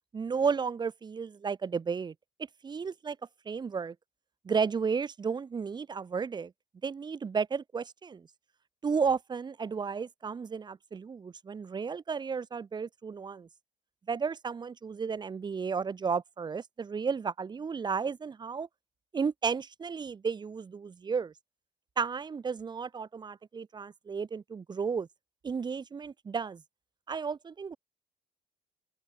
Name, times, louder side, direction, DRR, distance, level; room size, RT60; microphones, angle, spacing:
voice 1, 0.1-2.1 2.6-3.2 3.5-3.9 4.4-6.5 6.8-8.3 8.8-13.5 14.1-18.7 19.1-21.3 22.0-25.1 25.4-26.6 27.1-27.8, right 5 dB, 25° right, 0.7 m, -33 dB
open air
cardioid pair, 110°, 17 cm